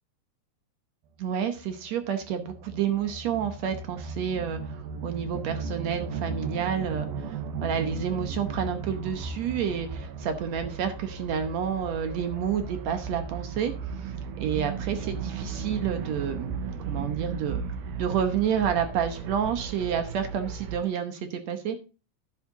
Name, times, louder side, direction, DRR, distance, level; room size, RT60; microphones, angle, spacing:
voice 1, 1.2-16.5 16.9-17.6 18.0-21.8, right 8 dB, 70° right, 8 dB, 1.7 m, -29 dB
sound 1, 1.6-20.8, right 5 dB, 90° right, 3.0 m, -36 dB
11.0 x 7.6 x 3.7 m, 0.32 s
omnidirectional pair, 4.3 m